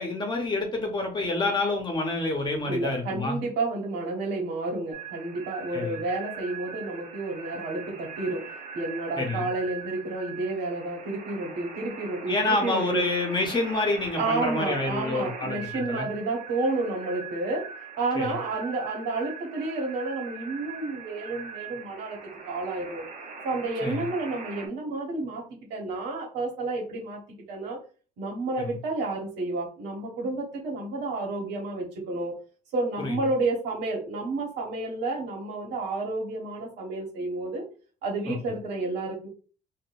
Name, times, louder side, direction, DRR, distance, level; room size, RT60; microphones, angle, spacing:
voice 1, 0.0-3.4 5.7-6.0 9.2-9.5 12.3-15.6 15.9-16.1 18.1-18.3 23.8-24.0 28.6-28.8 33.0-33.2 38.3-38.4, left 2 dB, 25° left, 2 dB, 0.9 m, -28 dB
voice 2, 2.6-8.5 8.7-13.0 14.2-17.7 18.0-22.2 22.4-23.1 23.4-25.4 25.7-27.2 27.5-27.8 28.2-32.4 32.7-37.6 38.0-39.3, right 2 dB, 85° right, 0 dB, 1.3 m, -30 dB
sound 1, 4.9-24.7, right 5 dB, 50° right, 0.9 m, -41 dB
3.7 x 2.5 x 2.5 m, 0.37 s
cardioid pair, 110°, 17 cm